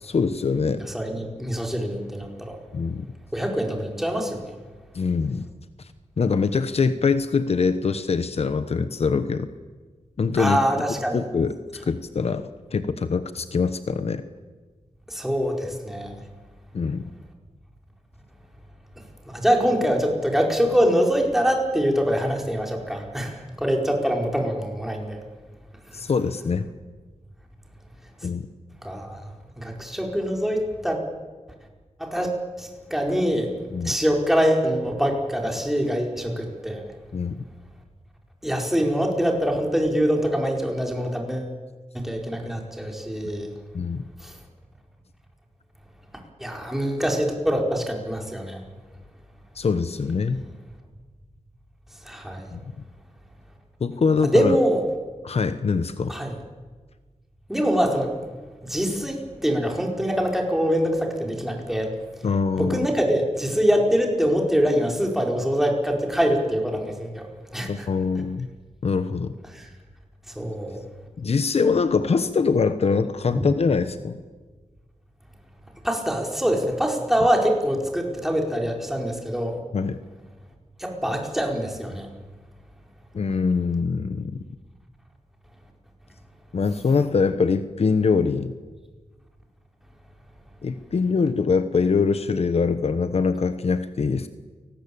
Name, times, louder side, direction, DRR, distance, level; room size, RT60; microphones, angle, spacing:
voice 1, 0.0-0.8 2.7-3.1 4.9-5.5 6.2-9.5 10.2-10.6 11.1-11.6 11.9-14.2 16.7-17.0 25.9-26.7 28.2-28.5 33.7-33.9 37.1-37.4 43.7-44.0 49.6-50.4 52.5-52.6 53.8-54.6 55.2-56.1 62.2-62.9 67.7-68.5 68.8-69.3 71.2-74.2 79.7-80.0 83.1-84.4 86.5-88.5 90.6-94.3, left 5 dB, 60° left, 11 dB, 1.1 m, -23 dB
voice 2, 0.9-2.6 3.3-4.5 10.4-11.2 15.1-16.2 19.3-25.2 28.8-29.2 29.6-31.0 32.0-32.3 32.6-33.5 33.8-36.8 38.4-41.5 41.9-43.5 44.2-44.3 46.4-48.6 52.0-52.5 54.2-54.8 56.1-56.3 57.5-58.1 58.6-61.9 62.6-67.3 67.5-67.9 69.5-69.7 70.3-70.8 73.3-73.5 75.8-79.6 80.8-82.1, equal, 5° right, 1 dB, 4.8 m, -24 dB
29.0 x 19.5 x 8.7 m, 1.4 s
wide cardioid pair, 125°, 12 cm